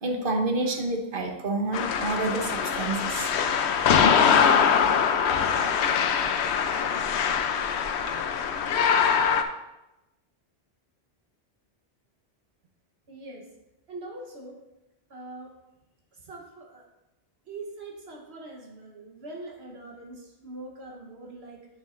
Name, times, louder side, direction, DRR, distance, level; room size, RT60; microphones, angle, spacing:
voice 1, 0.0-3.3, right 2 dB, 55° right, 3 dB, 1.2 m, -28 dB
sound 1, 1.7-9.4, left 7 dB, 85° left, 0.9 m, -23 dB
voice 2, 13.1-13.5 13.9-14.6 15.1-15.5 16.2-16.8 17.5-21.7, right 2 dB, 75° right, -1 dB, 1.4 m, -42 dB
8.9 x 7.2 x 2.5 m, 0.94 s
omnidirectional pair, 1.1 m